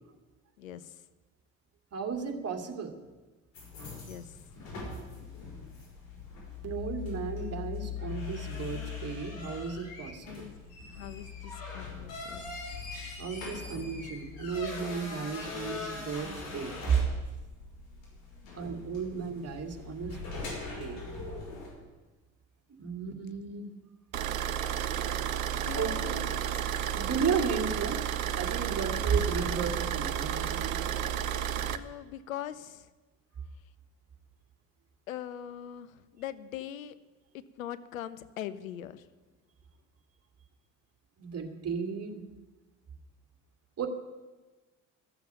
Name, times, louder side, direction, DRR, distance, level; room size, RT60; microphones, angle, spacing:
voice 1, 0.6-1.0 3.9-4.4 10.2-10.6 10.9-12.5 18.4-18.6 25.6-26.4 26.8-26.9 28.9-29.9 31.6-32.9 35.1-36.9 37.3-39.1, left 11 dB, 90° left, 14 dB, 0.7 m, -42 dB
voice 2, 1.9-3.0 6.6-10.5 13.2-17.0 18.5-20.5 20.8-21.0 22.8-23.7 25.8-26.2 26.9-28.0 28.3-30.8 41.2-42.2 43.8-43.9, right 6 dB, 40° right, 3 dB, 2.3 m, -34 dB
sound 1, 3.5-21.7, left 5 dB, 65° left, 5.8 m, -41 dB
sound 2, 24.1-31.8, right 9 dB, 85° right, 0.7 m, -32 dB
13.5 x 7.0 x 9.2 m, 1.2 s
hypercardioid pair, 60°, 39 cm